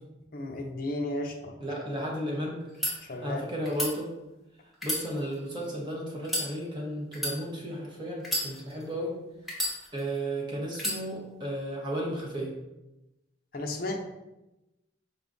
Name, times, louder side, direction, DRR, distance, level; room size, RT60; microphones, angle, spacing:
voice 1, 0.3-1.5 3.0-3.4 13.5-14.0, left 1 dB, 50° left, 2 dB, 0.5 m, -33 dB
voice 2, 1.6-2.6 3.2-4.1 4.8-9.1 9.9-12.6, equal, 25° right, -3 dB, 0.9 m, -34 dB
sound 1, 2.6-2.9 3.6-3.9 4.7-5.7 6.2-6.5 7.1-7.4 8.2-8.9 9.5-10.2 10.8-11.0, equal, ahead, 1.0 m, -31 dB
5.2 x 2.4 x 3.7 m, 0.98 s
head